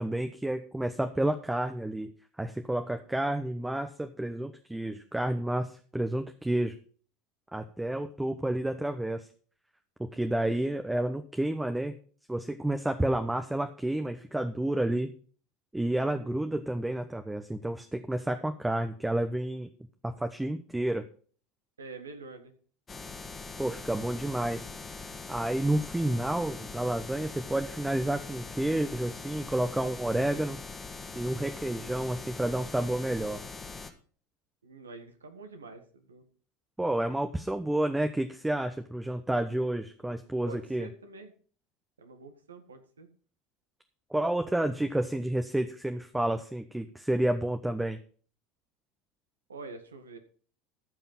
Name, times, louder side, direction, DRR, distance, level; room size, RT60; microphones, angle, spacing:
voice 1, 0.0-2.1 2.4-6.7 7.5-9.3 10.0-11.9 12.3-15.1 15.7-19.7 20.0-21.1 23.6-24.7 25.3-30.6 31.1-33.4 36.8-40.9 44.1-48.0, right 1 dB, 10° right, 6 dB, 1.0 m, -30 dB
voice 2, 16.1-16.4 21.8-22.5 34.6-36.2 40.4-41.3 42.0-43.1 49.5-50.2, right 3 dB, 85° right, 7 dB, 1.7 m, -46 dB
sound 1, 22.9-33.9, left 4 dB, 25° left, 1.8 m, -42 dB
14.0 x 5.6 x 5.6 m, 0.43 s
hypercardioid pair, 75°, 0 cm